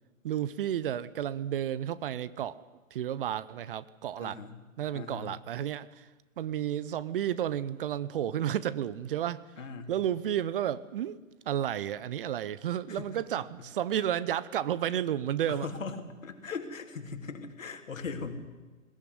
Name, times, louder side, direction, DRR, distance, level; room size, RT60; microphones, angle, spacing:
voice 1, 0.2-2.6 2.9-4.4 4.8-6.1 6.4-9.5 9.9-11.2 11.5-15.7, right 10 dB, 40° right, 18 dB, 0.8 m, -32 dB
voice 2, 4.2-4.5 4.9-5.3 9.6-9.9 12.9-13.1 15.5-16.0 16.2-18.3, left 5 dB, 70° left, 5 dB, 3.3 m, -39 dB
21.0 x 17.0 x 9.6 m, 1.2 s
figure-of-eight pair, 125°, 41 cm